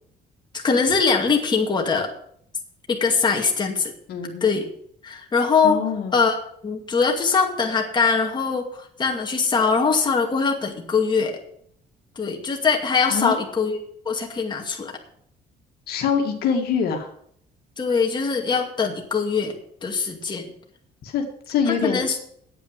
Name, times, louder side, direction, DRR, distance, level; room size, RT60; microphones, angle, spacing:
voice 1, 0.5-2.1 2.9-3.9 4.4-4.7 5.0-5.8 6.1-6.4 6.6-11.4 12.2-13.8 14.1-14.9 17.8-19.6 19.8-20.5 21.7-22.2, left 5 dB, 25° left, 1 dB, 2.3 m, -22 dB
voice 2, 4.1-4.5 5.6-6.2 13.1-13.3 15.9-17.1 21.0-22.2, left 6 dB, 65° left, 2 dB, 2.1 m, -24 dB
9.2 x 8.7 x 7.6 m, 0.67 s
cardioid pair, 110°, 17 cm